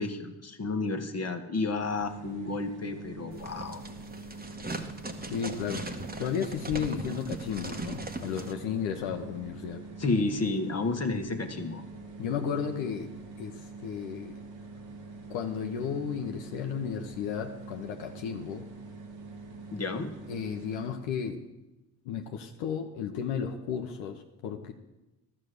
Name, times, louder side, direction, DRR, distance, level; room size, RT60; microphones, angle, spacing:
voice 1, 0.0-3.8 10.0-11.8 19.7-20.1, left 3 dB, 35° left, 5 dB, 1.5 m, -31 dB
sound 1, 1.8-21.1, right 3 dB, 80° right, 1.8 m, -45 dB
sound 2, 3.3-8.5, right 2 dB, 20° right, 1.4 m, -39 dB
voice 2, 5.2-5.8 6.2-9.8 12.2-13.1 13.4-14.4 15.3-18.7 20.3-21.4 22.0-24.7, left 7 dB, 75° left, 4 dB, 1.0 m, -33 dB
12.5 x 7.5 x 6.6 m, 0.99 s
hypercardioid pair, 55°, 46 cm